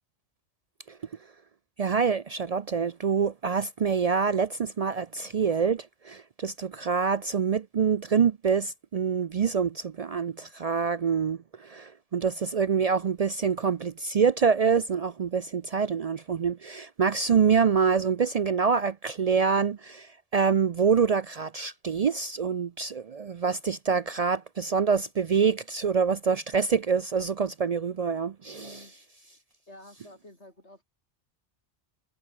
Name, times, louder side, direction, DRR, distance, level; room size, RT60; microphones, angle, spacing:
voice 1, 1.8-28.8, right 6 dB, 55° right, 0.4 m, -26 dB
voice 2, 28.5-28.9 29.7-30.8, left 1 dB, 70° left, 8.5 m, -50 dB
omnidirectional pair, 1.2 m